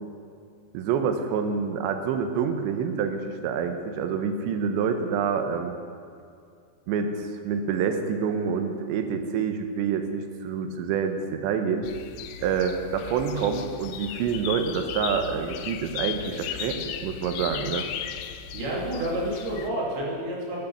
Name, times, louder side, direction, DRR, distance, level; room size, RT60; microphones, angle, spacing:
voice 1, 0.7-5.8 6.9-11.9 12.4-17.9, right 6 dB, 75° right, 6 dB, 3.0 m, -27 dB
sound 1, 11.8-19.7, left 9 dB, 85° left, 2.6 m, -36 dB
voice 2, 18.5-20.6, right 1 dB, 55° right, -4 dB, 4.4 m, -29 dB
13.5 x 9.3 x 7.1 m, 2.4 s
omnidirectional pair, 5.5 m